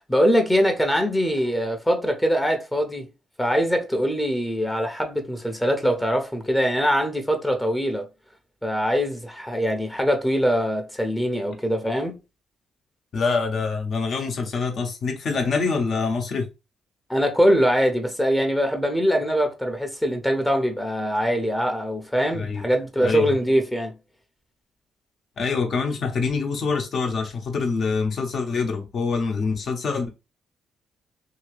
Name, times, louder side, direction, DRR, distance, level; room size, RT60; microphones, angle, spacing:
voice 1, 0.1-3.1 3.4-8.1 8.6-12.2 17.1-23.9, equal, 10° left, 0.7 m, -22 dB
voice 2, 13.1-16.5 22.3-22.6 23.0-23.3 25.4-30.1, left 4 dB, 55° left, 0.9 m, -25 dB
2.7 x 2.7 x 3.2 m
cardioid pair, 90°, 0 cm